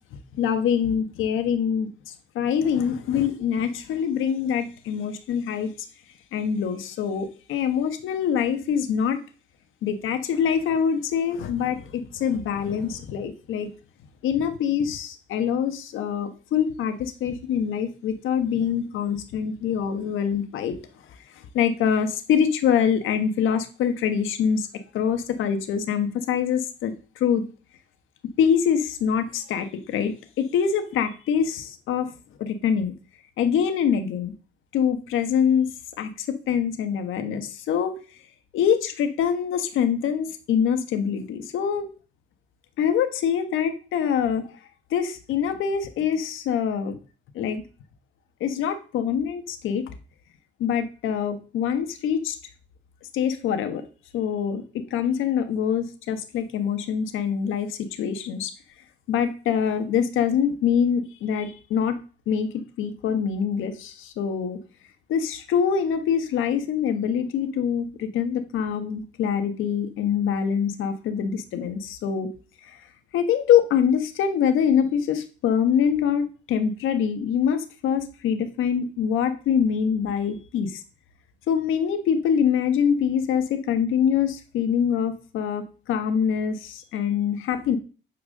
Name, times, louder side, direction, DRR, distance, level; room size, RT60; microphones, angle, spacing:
voice 1, 0.4-5.7 6.3-9.2 9.8-13.7 14.2-20.7 21.5-24.7 24.9-27.4 28.4-32.1 32.4-32.9 33.4-34.3 34.7-35.7 36.0-37.9 38.5-41.9 42.8-44.5 44.9-47.0 47.3-47.6 48.4-49.8 50.6-52.4 53.1-53.8 54.1-58.5 59.1-62.0 62.3-64.6 65.1-72.3 72.7-72.8 73.1-80.8 81.5-87.8, left 8 dB, 85° left, 8 dB, 1.5 m, -24 dB
10.0 x 4.7 x 6.5 m, 0.37 s
cardioid pair, 90°, 20 cm